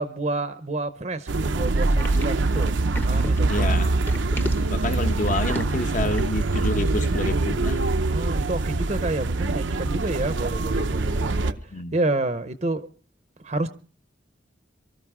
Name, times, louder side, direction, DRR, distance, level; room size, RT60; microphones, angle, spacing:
voice 1, 0.0-2.8 3.0-3.7 4.3-4.8 8.1-12.9 13.4-13.7, right 2 dB, 35° right, 0.7 m, -29 dB
sound 1, 1.3-11.5, right 2 dB, 70° right, 0.6 m, -24 dB
sound 2, 1.8-6.5, left 1 dB, 10° left, 0.8 m, -36 dB
voice 2, 3.5-3.9 4.7-7.8 11.7-11.9, left 2 dB, 40° left, 0.9 m, -28 dB
24.5 x 13.5 x 3.6 m
head